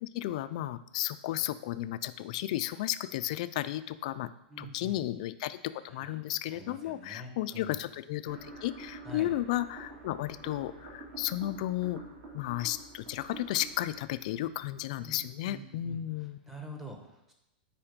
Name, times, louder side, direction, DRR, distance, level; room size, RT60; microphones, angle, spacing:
voice 1, 0.0-4.3 4.6-5.6 5.8-12.0 12.3-16.4, left 14 dB, 40° left, 13 dB, 0.4 m, -34 dB
voice 2, 4.5-5.0 5.9-6.2 6.5-7.8 9.0-9.3 15.0-16.0 16.5-17.3, left 1 dB, 5° right, 2 dB, 1.0 m, -46 dB
sound 1, 8.3-15.3, right 3 dB, 50° right, 2.6 m, -48 dB
8.7 x 4.9 x 5.1 m, 0.86 s
supercardioid pair, 170°, 6 cm